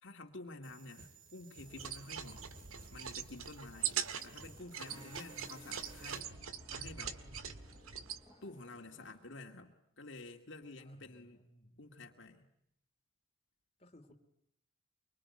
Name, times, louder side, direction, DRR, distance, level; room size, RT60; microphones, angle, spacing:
voice 1, 0.0-2.5 2.9-6.3 6.7-7.2 8.4-11.4 11.8-12.5, left 2 dB, 60° left, 3 dB, 2.2 m, -50 dB
sound 1, 0.6-6.2, right 4 dB, 45° right, 4.9 m, -57 dB
sound 2, 1.6-9.2, left 1 dB, 15° right, 6.6 m, -62 dB
sound 3, 1.7-8.2, right 9 dB, 90° right, 1.8 m, -42 dB
voice 2, 3.7-5.1 10.8-11.8 13.8-14.1, left 1 dB, 30° left, 2 dB, 2.8 m, -62 dB
25.0 x 24.5 x 9.7 m, 0.75 s
head